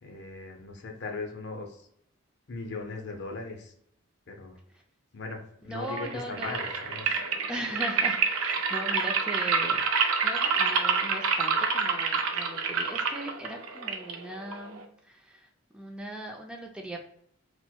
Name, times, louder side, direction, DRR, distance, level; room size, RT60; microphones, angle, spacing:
voice 1, 0.0-1.9 2.5-3.7 4.3-4.6 5.1-7.2, left 3 dB, 55° left, 2 dB, 0.5 m, -38 dB
voice 2, 5.6-6.7 7.1-15.5 15.7-17.1, right 1 dB, 5° right, 1 dB, 0.3 m, -39 dB
sound 1, 5.8-14.9, right 5 dB, 85° right, 0.4 m, -28 dB
4.4 x 2.0 x 2.2 m, 0.70 s
head